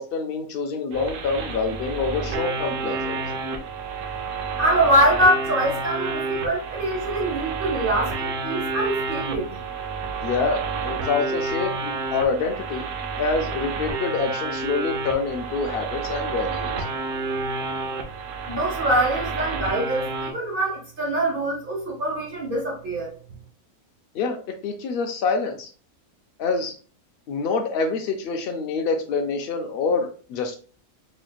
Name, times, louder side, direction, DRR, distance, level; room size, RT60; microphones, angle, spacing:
voice 1, 0.0-3.2 10.2-12.8 13.2-16.7 24.1-25.7 26.4-26.7 27.3-30.5, left 4 dB, 75° left, 3 dB, 0.5 m, -26 dB
sound 1, 0.9-20.3, right 4 dB, 65° right, 1.0 m, -30 dB
voice 2, 4.6-9.6 18.5-23.1, right 1 dB, 40° right, -2 dB, 1.1 m, -24 dB
4.1 x 3.1 x 2.3 m, 0.39 s
omnidirectional pair, 1.5 m